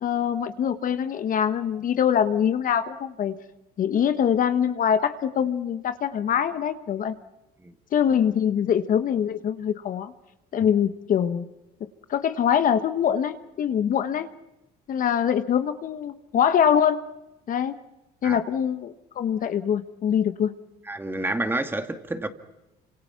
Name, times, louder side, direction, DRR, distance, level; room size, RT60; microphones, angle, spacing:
voice 1, 0.0-3.4 3.8-7.1 7.9-10.1 10.5-11.5 12.1-14.3 14.9-17.0 17.5-17.7 18.2-20.5, left 8 dB, 55° left, 1.2 m, -23 dB
voice 2, 20.9-22.3, right 2 dB, 15° right, 2.1 m, -29 dB
28.5 x 26.0 x 5.9 m
cardioid pair, 110°, 17 cm